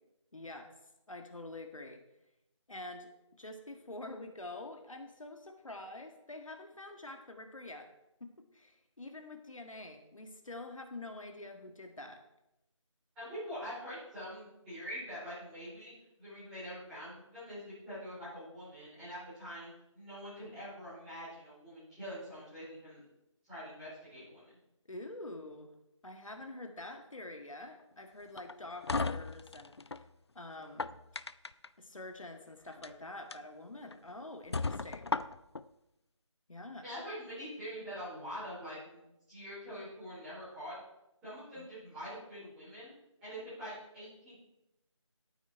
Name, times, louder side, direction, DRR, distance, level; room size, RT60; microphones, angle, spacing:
voice 1, 0.3-0.7 1.1-2.0 2.7-3.1 3.4-7.9 8.2-12.2 24.9-25.7 26.0-30.0 30.3-30.9 31.8-35.1 36.5-36.9 41.6-41.7, left 2 dB, 80° left, 4 dB, 1.7 m, -46 dB
voice 2, 13.1-15.9 16.2-19.7 19.9-23.0 23.5-24.4 36.8-39.0 39.3-40.7 41.2-42.9 43.2-44.4, equal, 5° right, -16 dB, 4.8 m, -44 dB
sound 1, 28.4-30.0 30.6-31.7 32.7-32.9 33.3-33.4 33.9-34.0 34.5-35.6, left 3 dB, 55° left, 0.4 m, -35 dB
11.5 x 9.0 x 4.5 m, 0.87 s
figure-of-eight pair, 175°, 17 cm